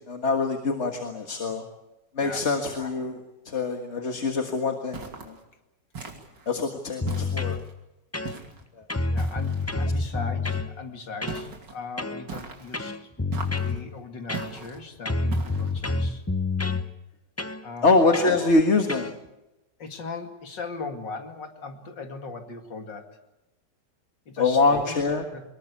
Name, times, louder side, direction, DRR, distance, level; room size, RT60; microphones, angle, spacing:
voice 1, 0.1-1.6 2.2-3.2 3.5-5.4 6.5-7.6 8.8-8.9 17.8-19.1 24.4-25.2, left 3 dB, 40° left, 5 dB, 1.9 m, -24 dB
sound 1, 4.9-5.4 5.9-6.5 7.1-7.7 8.2-8.6 9.2-9.7 11.3-11.8 12.3-12.8 13.3-13.8 14.3-14.8 15.3-15.8, right 5 dB, 80° right, 3.4 m, -39 dB
sound 2, 7.0-7.6 8.1-8.6 8.9-10.7 11.2-11.5 12.0-12.2 12.7-13.8 14.3-14.8 15.1-16.9 17.4-17.6 18.1-18.4 18.9-19.1, left 3 dB, 20° left, 0.4 m, -28 dB
voice 2, 9.1-13.0 13.6-16.2 17.6-18.0 19.8-23.2 24.3-25.0 25.3-25.4, left 4 dB, 85° left, 5 dB, 2.9 m, -38 dB
24.0 x 21.0 x 8.4 m, 0.98 s
omnidirectional pair, 1.9 m